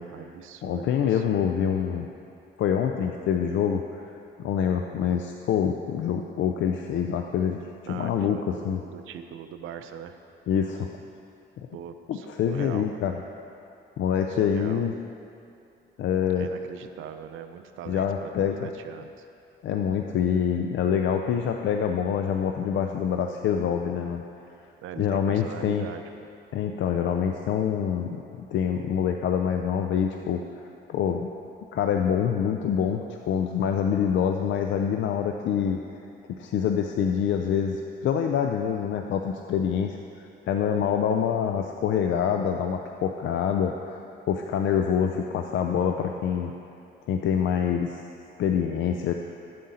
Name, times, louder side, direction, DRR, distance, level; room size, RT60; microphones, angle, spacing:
voice 1, 0.0-1.5 7.9-10.2 11.7-13.0 14.3-14.9 16.4-19.2 24.8-26.3, right 9 dB, 85° right, 8 dB, 0.6 m, -41 dB
voice 2, 0.6-2.1 2.6-8.8 10.5-10.9 12.1-13.1 14.0-14.9 16.0-16.5 17.9-18.7 19.6-24.2 25.0-25.8 26.5-30.6 30.9-31.3 31.7-35.8 36.3-44.0 44.3-46.5 47.1-48.0 48.4-49.1, left 8 dB, 70° left, 4 dB, 0.5 m, -26 dB
12.0 x 7.6 x 4.2 m, 2.6 s
cardioid pair, 90°, 20 cm